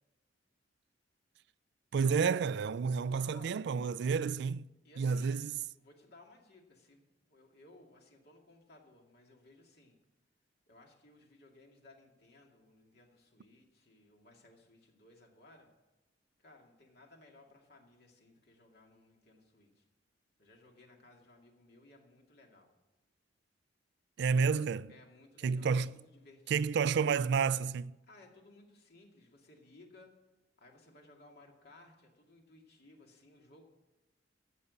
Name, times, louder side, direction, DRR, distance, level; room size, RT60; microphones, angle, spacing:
voice 1, 1.9-4.7 5.0-5.6 24.2-24.9 25.4-26.0 26.5-28.0, right 5 dB, 65° right, 0.4 m, -30 dB
voice 2, 4.8-5.5 5.8-10.0 10.7-15.7 16.4-19.9 20.4-22.7 24.9-27.1 28.0-30.2 30.6-33.6, left 2 dB, 60° left, 2.4 m, -60 dB
14.0 x 7.0 x 8.2 m
head